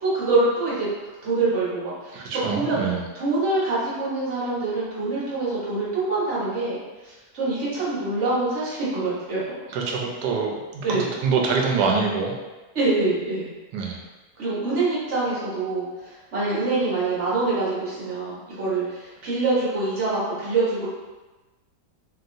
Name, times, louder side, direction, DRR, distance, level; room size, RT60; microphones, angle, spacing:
voice 1, 0.0-0.9 1.2-2.2 2.5-2.8 3.1-9.4 10.8-11.1 12.7-13.5 14.4-15.9 16.3-20.9, right 3 dB, 45° right, -9 dB, 1.3 m, -25 dB
voice 2, 2.1-3.0 9.7-12.3 13.7-14.0, right 5 dB, 85° right, 0 dB, 1.2 m, -25 dB
2.9 x 2.9 x 2.6 m, 1.2 s
omnidirectional pair, 1.8 m